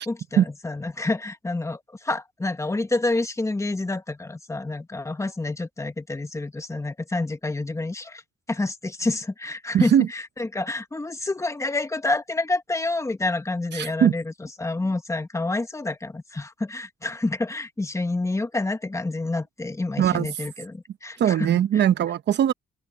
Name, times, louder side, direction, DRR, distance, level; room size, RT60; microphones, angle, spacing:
voice 1, 0.0-8.2 8.5-14.3 14.6-21.5, left 2 dB, 15° left, 1.6 m, -28 dB
voice 2, 9.7-10.1 13.7-14.2 20.0-20.3 21.2-22.5, right 10 dB, 60° right, 1.0 m, -20 dB
open air
cardioid pair, 90°, 20 cm